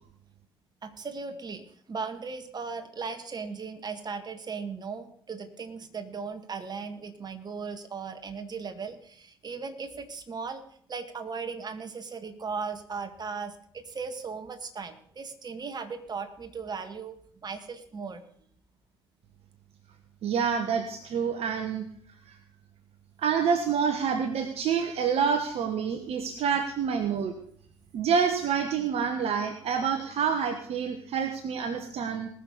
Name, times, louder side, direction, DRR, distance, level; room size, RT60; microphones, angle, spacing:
voice 1, 0.8-10.6 10.9-18.2, right 5 dB, 35° right, 7 dB, 1.9 m, -37 dB
voice 2, 20.2-21.9 22.3-22.4 23.2-27.3 27.9-32.3, right 6 dB, 55° right, 7 dB, 1.3 m, -27 dB
20.0 x 6.7 x 5.4 m, 0.62 s
hypercardioid pair, 50°, 12 cm